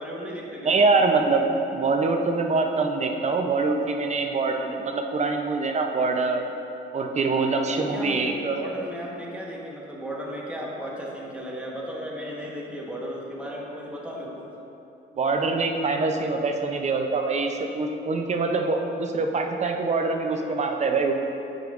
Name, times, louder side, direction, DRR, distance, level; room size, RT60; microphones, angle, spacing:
voice 1, 0.0-0.9 7.7-14.5, equal, 5° right, -4 dB, 1.2 m, -35 dB
voice 2, 0.6-1.4 1.7-6.4 6.9-8.6 15.2-21.1, right 3 dB, 35° right, 4 dB, 0.6 m, -24 dB
8.9 x 5.3 x 2.5 m, 2.8 s
cardioid pair, 90°, 20 cm